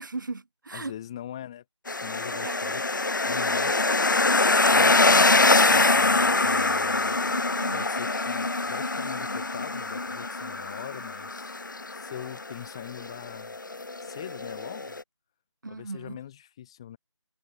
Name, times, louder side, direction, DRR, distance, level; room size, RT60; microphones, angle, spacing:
voice 1, 0.0-0.9 2.3-2.7 7.3-7.9 15.6-16.2, right 3 dB, 40° right, 2.8 m, -38 dB
voice 2, 0.7-2.8 3.2-3.9 4.7-7.2 7.7-11.6 11.9-13.5 14.0-14.9 15.7-17.0, left 11 dB, 10° left, 1.6 m, -41 dB
sound 1, 1.9-15.0, left 3 dB, 40° left, 0.9 m, -24 dB
figure-of-eight pair, 165°, 16 cm